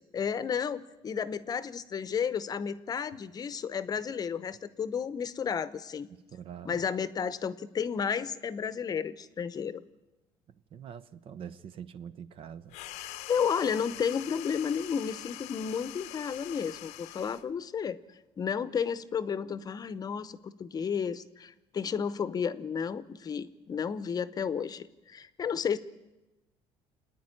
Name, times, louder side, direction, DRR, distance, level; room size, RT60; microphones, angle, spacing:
voice 1, 0.0-6.1 6.6-9.8 13.0-18.0 18.4-25.8, left 7 dB, 35° left, 15 dB, 0.8 m, -32 dB
voice 2, 6.1-6.8 10.7-12.7, right 8 dB, 50° right, 14 dB, 0.8 m, -44 dB
sound 1, 12.7-17.5, left 15 dB, 75° left, 0.8 m, -44 dB
27.5 x 9.7 x 9.8 m, 1.0 s
cardioid pair, 120°, 12 cm